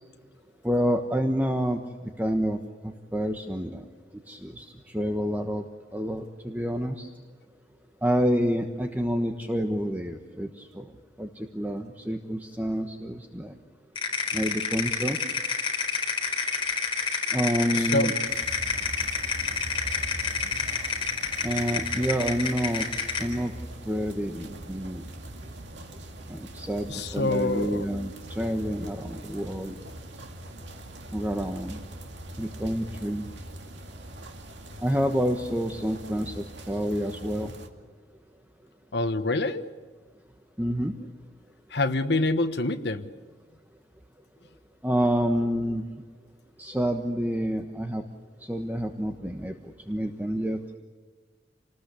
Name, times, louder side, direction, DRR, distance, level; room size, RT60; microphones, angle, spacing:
voice 1, 0.6-1.8 2.2-2.6 3.1-3.8 4.3-5.6 5.9-7.1 8.0-10.8 11.2-13.5 14.3-15.2 17.3-18.1 21.4-22.9 23.2-23.5 23.9-25.1 26.3-26.9 27.1-29.8 31.1-31.8 32.4-33.3 34.8-37.5 40.6-40.9 44.8-45.9 46.6-48.0 48.4-49.5 49.9-50.6, equal, 10° right, 4 dB, 1.2 m, -28 dB
sound 1, 14.0-23.3, left 5 dB, 30° left, 4.6 m, -29 dB
voice 2, 17.7-18.1 26.9-27.9 38.9-39.6 41.7-43.1, left 2 dB, 65° left, 7 dB, 1.3 m, -26 dB
sound 2, 18.2-37.7, right 1 dB, 90° right, 2.2 m, -42 dB
28.5 x 20.0 x 8.4 m, 1.5 s
head